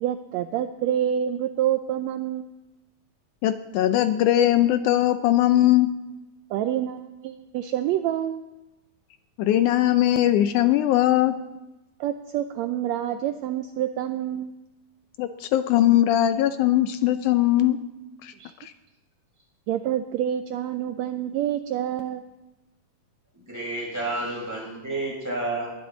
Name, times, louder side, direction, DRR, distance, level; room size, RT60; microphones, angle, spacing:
voice 1, 0.0-2.5 6.5-8.5 12.0-14.5 18.4-18.5 19.7-22.3, right 11 dB, 80° right, 8 dB, 1.6 m, -27 dB
voice 2, 3.4-5.9 9.4-11.3 15.2-17.8 18.2-18.3 18.6-18.7, left 13 dB, 80° left, 10 dB, 2.0 m, -20 dB
voice 3, 23.3-25.7, right 2 dB, 5° right, -5 dB, 6.6 m, -30 dB
21.0 x 12.5 x 4.0 m, 1.0 s
omnidirectional pair, 3.6 m